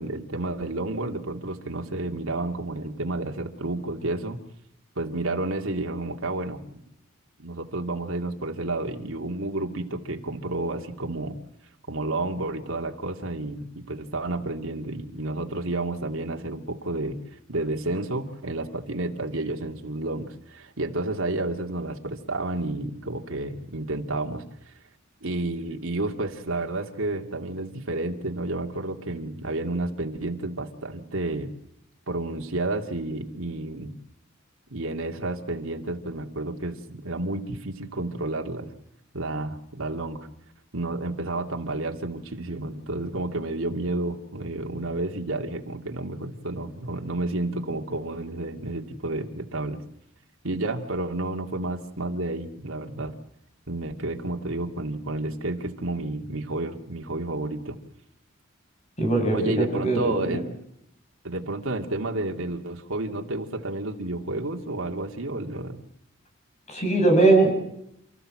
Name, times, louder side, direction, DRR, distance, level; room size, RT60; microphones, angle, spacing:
voice 1, 0.0-4.4 5.0-6.6 7.4-11.4 11.9-17.2 17.5-24.7 25.2-31.5 32.1-33.9 34.7-38.7 39.1-40.3 40.7-49.8 50.4-53.1 53.7-57.8 59.3-60.5 61.2-65.8, right 2 dB, 85° right, 3 dB, 2.3 m, -31 dB
voice 2, 59.0-60.4 66.7-67.5, right 2 dB, 35° left, 3 dB, 7.5 m, -21 dB
29.5 x 14.5 x 7.6 m, 0.77 s
head